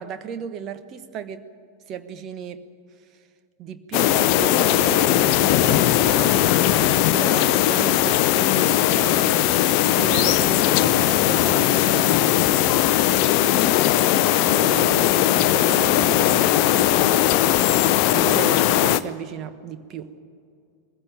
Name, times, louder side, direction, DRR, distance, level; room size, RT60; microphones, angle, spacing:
voice 1, 0.0-1.4 1.9-2.6 3.6-9.6 10.0-12.4 14.0-20.1, right 7 dB, 35° right, 10 dB, 1.3 m, -35 dB
sound 1, 3.9-19.0, left 13 dB, 45° left, 0.6 m, -19 dB
21.0 x 15.5 x 9.1 m, 2.4 s
figure-of-eight pair, 90°, 0 cm